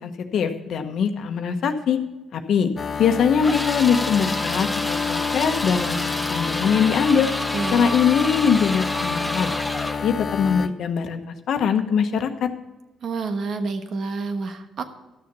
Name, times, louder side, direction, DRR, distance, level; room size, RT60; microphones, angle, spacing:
voice 1, 0.0-2.0 2.3-2.7 3.0-7.3 7.7-12.5, left 7 dB, 70° left, 7 dB, 1.1 m, -22 dB
sound 1, 2.8-10.7, left 6 dB, 45° left, 0.6 m, -29 dB
sound 2, 3.4-10.1, left 1 dB, ahead, 1.3 m, -29 dB
voice 2, 7.5-7.9 13.0-14.8, right 4 dB, 60° right, 7 dB, 1.2 m, -28 dB
12.5 x 6.8 x 6.8 m, 1.1 s
cardioid pair, 90°, 0 cm